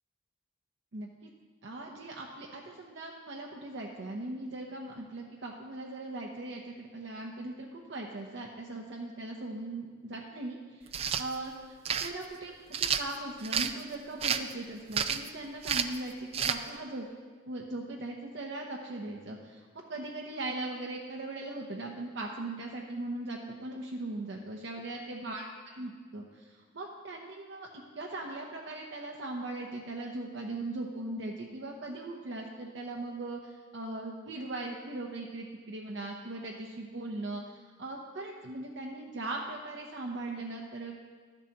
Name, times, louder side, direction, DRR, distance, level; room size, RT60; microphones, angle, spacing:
voice 1, 0.9-1.3 1.6-10.8 11.2-11.5 12.0-17.1 17.5-41.0, right 2 dB, 60° right, 0 dB, 0.8 m, -39 dB
sound 1, 10.9-11.3 11.9-12.1 12.7-13.7 14.2-14.5 14.9-15.3 15.6-16.0 16.3-16.6, right 7 dB, 30° right, 0.3 m, -30 dB
12.5 x 10.5 x 2.9 m, 1.5 s
head